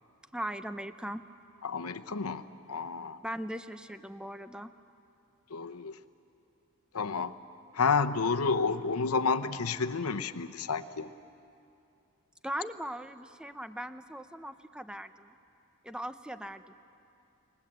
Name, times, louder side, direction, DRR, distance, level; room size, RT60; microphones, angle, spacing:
voice 1, 0.3-1.2 3.2-4.7 12.4-15.3 15.8-16.7, right 1 dB, 5° right, 10 dB, 0.6 m, -39 dB
voice 2, 1.6-3.2 5.5-6.0 6.9-7.3 7.7-11.1, left 4 dB, 90° left, 9 dB, 0.9 m, -30 dB
29.5 x 19.0 x 8.1 m, 2.7 s
head